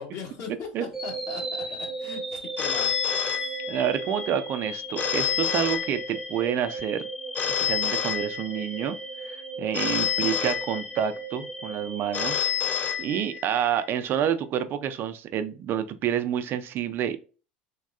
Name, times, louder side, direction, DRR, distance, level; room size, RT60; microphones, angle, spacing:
voice 1, 0.0-3.6, left 5 dB, 50° left, 1.3 m, -40 dB
sound 1, 0.9-13.1, right 2 dB, 5° right, 0.7 m, -36 dB
Telephone, 2.6-4.1 5.0-6.5 7.3-8.8 9.7-11.2 12.1-13.6, left 9 dB, 35° left, 0.4 m, -28 dB
voice 2, 3.7-7.1 7.5-9.0 9.2-12.5 13.0-17.2, right 9 dB, 45° right, 0.4 m, -28 dB
3.5 x 2.2 x 2.4 m
hypercardioid pair, 85°, 5 cm